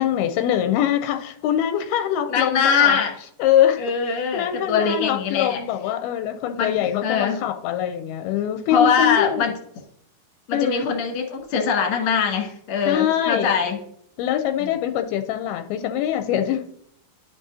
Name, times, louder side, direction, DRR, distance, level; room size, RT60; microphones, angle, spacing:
voice 1, 0.0-3.0 3.4-3.8 4.1-9.5 10.5-10.9 12.9-13.5 14.2-16.7, left 11 dB, 85° left, 7 dB, 2.5 m, -23 dB
voice 2, 2.3-3.1 3.8-5.6 6.6-6.8 7.0-7.4 8.7-9.5 10.5-13.8 14.6-14.7, left 6 dB, 45° left, 0 dB, 2.0 m, -22 dB
11.0 x 6.1 x 2.7 m, 0.66 s
omnidirectional pair, 4.5 m